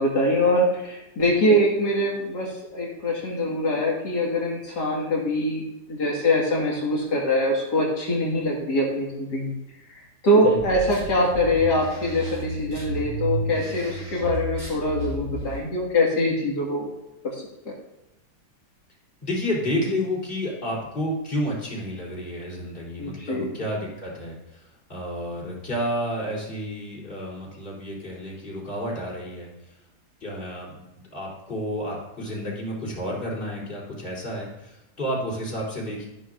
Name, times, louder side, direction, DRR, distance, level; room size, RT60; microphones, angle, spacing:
voice 1, 0.0-5.6 5.9-9.6 9.9-16.9 17.2-17.7 23.0-23.5, left 1 dB, 80° left, -3 dB, 2.5 m, -23 dB
sound 1, 10.6-15.6, right 2 dB, 65° right, 4.0 m, -32 dB
voice 2, 19.2-29.5 30.2-36.1, equal, 30° left, -4 dB, 3.8 m, -31 dB
13.0 x 11.0 x 2.5 m, 0.94 s
omnidirectional pair, 1.8 m